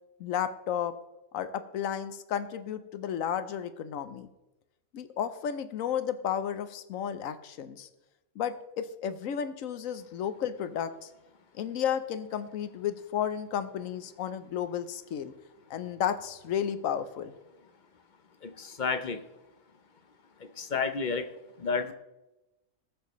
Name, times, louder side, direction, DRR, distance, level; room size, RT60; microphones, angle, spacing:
voice 1, 0.2-0.9 1.3-4.3 4.9-7.9 8.4-11.1 11.6-15.3 15.7-17.3, left 9 dB, 70° left, 11 dB, 1.1 m, -33 dB
voice 2, 18.4-19.2 20.4-21.3 21.6-21.9, left 5 dB, 50° left, 9 dB, 0.6 m, -31 dB
19.5 x 6.7 x 3.1 m, 0.99 s
omnidirectional pair, 1.5 m